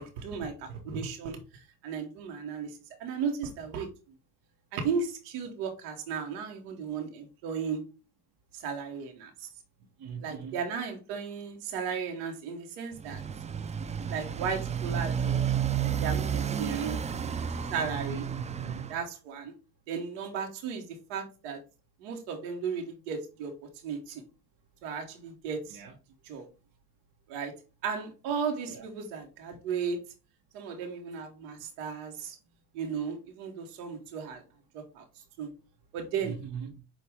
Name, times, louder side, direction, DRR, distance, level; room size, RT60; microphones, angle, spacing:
voice 1, 0.0-1.4 1.8-2.7 3.0-3.9 4.7-7.8 8.5-9.5 10.2-13.2 14.1-15.4 15.7-17.0 17.7-18.3 18.9-19.5 19.9-21.6 22.0-23.5 23.8-24.2 24.8-25.8 26.3-26.5 27.3-27.5 27.8-30.0 30.5-32.4 32.7-34.4 34.7-35.0 35.4-35.5 35.9-36.4, right 6 dB, 85° right, 1.1 m, -35 dB
voice 2, 10.0-10.6 16.6-17.0 18.3-18.9 25.7-25.9 28.7-28.9 31.6-31.7 36.2-36.8, right 7 dB, 50° right, 1.0 m, -41 dB
Motorcycle, 12.9-19.0, right 8 dB, 15° right, 0.3 m, -31 dB
6.2 x 2.5 x 3.4 m
supercardioid pair, 70°, 46 cm